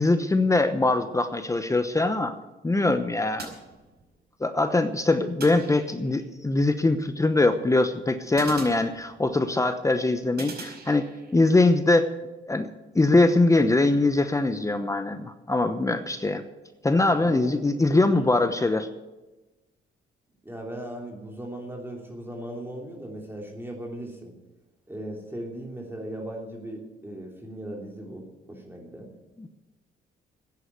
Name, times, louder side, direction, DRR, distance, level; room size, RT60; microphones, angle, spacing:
voice 1, 0.0-2.3 2.6-3.5 4.4-11.1 11.3-12.1 12.5-12.7 12.9-16.4 16.8-18.9 29.4-29.5, left 2 dB, 15° left, 9 dB, 0.9 m, -22 dB
sound 1, 3.4-4.3 5.4-6.3 8.4-9.5 10.4-11.4, right 3 dB, 55° right, 5.1 m, -42 dB
voice 2, 17.2-17.6 17.9-18.3 20.4-24.3 24.9-29.1, right 1 dB, 10° right, 0 dB, 3.1 m, -38 dB
14.5 x 10.0 x 8.2 m, 1.1 s
cardioid pair, 90°, 20 cm